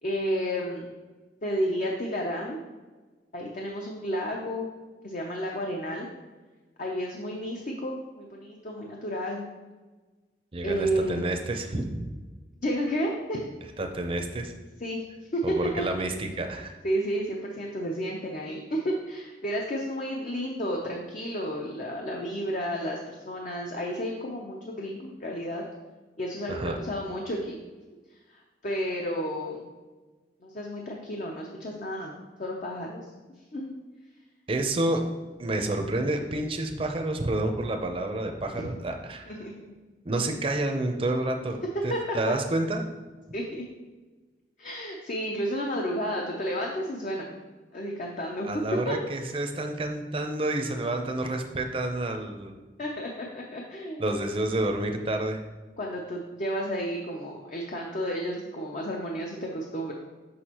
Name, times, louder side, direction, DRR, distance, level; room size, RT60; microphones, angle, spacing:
voice 1, 0.0-0.9 1.4-2.6 3.3-4.7 5.0-6.1 6.8-9.4 10.6-11.4 12.6-13.5 14.8-15.0 15.3-15.8 16.8-25.6 26.2-27.6 28.3-29.7 30.4-33.1 33.5-33.7 38.6-38.7 39.3-39.7 41.9-42.0 43.3-43.6 44.6-47.3 47.7-48.5 48.9-49.0 52.8-54.0 55.8-59.9, equal, 45° left, 0 dB, 0.6 m, -31 dB
voice 2, 10.5-12.1 13.8-14.5 15.4-16.8 26.5-26.8 34.5-35.1 35.4-39.3 40.0-42.9 48.4-52.5 54.0-55.4, right 1 dB, 30° right, 4 dB, 0.6 m, -29 dB
6.4 x 5.7 x 2.9 m, 1.3 s
head